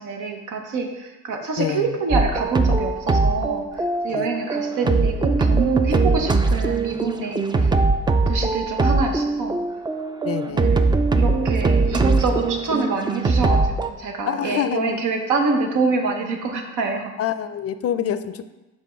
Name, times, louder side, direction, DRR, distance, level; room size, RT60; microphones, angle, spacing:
voice 1, 0.0-9.6 10.5-17.1, right 4 dB, 80° right, 3 dB, 1.0 m, -26 dB
voice 2, 1.6-1.9 4.1-4.3 4.8-4.9 7.6-7.9 10.2-10.7 14.3-15.0 17.2-18.4, left 9 dB, 50° left, 12 dB, 0.4 m, -26 dB
sound 1, 2.1-13.9, right 3 dB, 15° right, 0.3 m, -21 dB
5.2 x 3.5 x 5.6 m, 1.1 s
cardioid pair, 90°, 30 cm